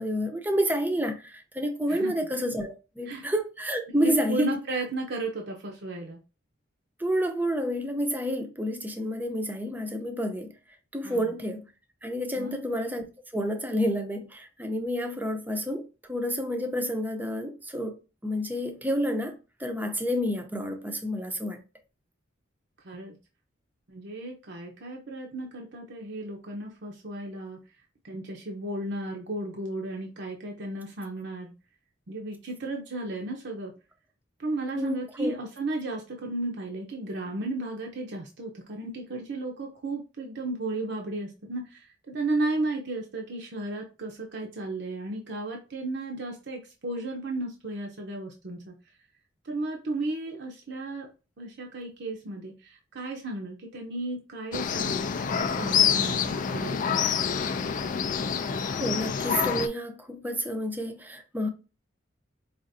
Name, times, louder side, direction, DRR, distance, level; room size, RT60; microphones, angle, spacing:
voice 1, 0.0-4.6 7.0-10.5 10.9-11.7 12.0-13.1 13.3-18.0 18.2-21.6 34.8-35.4 58.4-61.5, equal, 10° right, 0.6 m, -29 dB
voice 2, 3.9-6.2 11.0-11.3 12.4-12.6 22.8-23.1 23.9-27.6 28.0-31.5 32.1-33.7 34.4-48.7 49.4-51.1 51.4-57.2, right 2 dB, 60° right, 0.7 m, -34 dB
sound 1, 54.5-59.7, left 7 dB, 45° left, 0.3 m, -27 dB
4.9 x 2.5 x 2.6 m
head